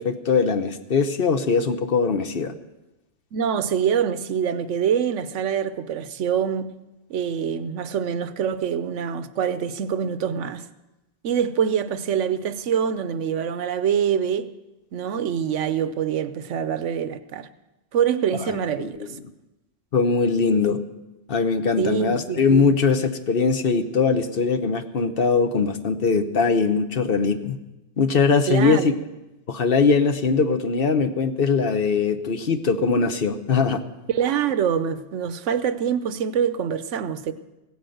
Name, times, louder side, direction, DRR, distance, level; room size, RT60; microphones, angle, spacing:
voice 1, 0.0-2.5 18.5-19.1 19.9-20.8 21.3-27.6 28.0-28.9 29.5-33.8, left 5 dB, 55° left, 9 dB, 1.1 m, -21 dB
voice 2, 3.3-6.7 7.1-10.6 11.2-14.5 14.9-17.5 17.9-19.2 21.8-22.7 28.5-29.0 34.1-37.3, right 8 dB, 85° right, 13 dB, 1.1 m, -25 dB
16.5 x 9.4 x 7.8 m, 1.0 s
omnidirectional pair, 1.2 m